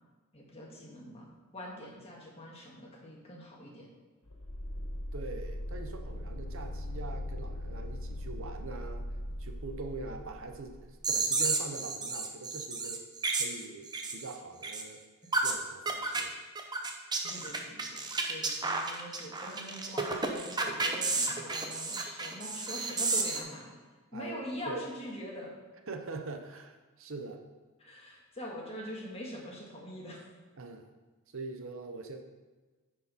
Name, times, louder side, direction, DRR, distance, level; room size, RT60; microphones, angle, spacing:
voice 1, 0.3-3.9 17.2-18.0 18.3-23.7 24.1-25.5 27.8-30.2, equal, 25° left, -2 dB, 1.7 m, -44 dB
sound 1, 4.3-10.9, left 1 dB, 75° left, 1.9 m, -39 dB
voice 2, 5.1-9.1 9.4-13.0 13.3-15.0 15.4-16.3 24.1-24.8 25.9-27.4 30.6-30.9 31.3-32.2, right 3 dB, 60° right, 5 dB, 0.7 m, -43 dB
sound 2, 11.0-14.4 14.6-14.8 15.3-15.5 15.9-16.2 16.6-23.4, right 3 dB, 20° right, 0.7 m, -32 dB
9.9 x 4.6 x 5.3 m, 1.3 s
head